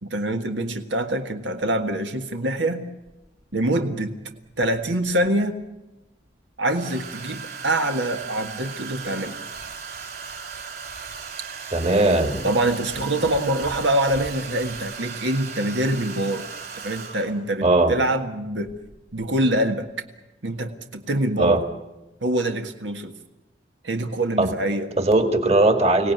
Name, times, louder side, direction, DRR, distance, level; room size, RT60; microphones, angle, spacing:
voice 1, 0.0-2.9 3.5-4.1 4.6-5.6 6.6-9.4 12.4-16.5 16.8-18.8 19.1-19.9 20.4-21.6 22.2-23.1 23.8-24.9, right 1 dB, 85° right, 5 dB, 1.7 m, -25 dB
Domestic sounds home sounds, 3.1-3.2 4.6-5.3 6.7-17.5 18.7-18.9 19.2-19.6, right 5 dB, 55° right, 6.2 m, -37 dB
voice 2, 11.7-12.5 17.6-17.9 21.4-21.6 24.4-24.5 25.0-26.1, right 2 dB, 35° right, 6 dB, 2.0 m, -19 dB
24.5 x 17.5 x 9.4 m, 0.99 s
head